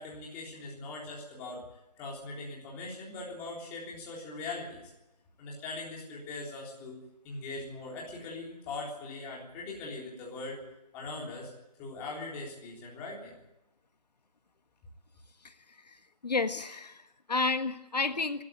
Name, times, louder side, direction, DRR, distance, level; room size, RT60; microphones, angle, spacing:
voice 1, 0.0-1.6 2.0-4.8 5.4-7.0 7.2-10.6 10.9-11.5 11.8-13.4, left 3 dB, 10° left, -3 dB, 3.6 m, -41 dB
voice 2, 15.4-16.0 16.2-18.4, left 3 dB, 80° left, 10 dB, 1.5 m, -31 dB
24.0 x 13.5 x 9.0 m, 0.94 s
hypercardioid pair, 170°, 21 cm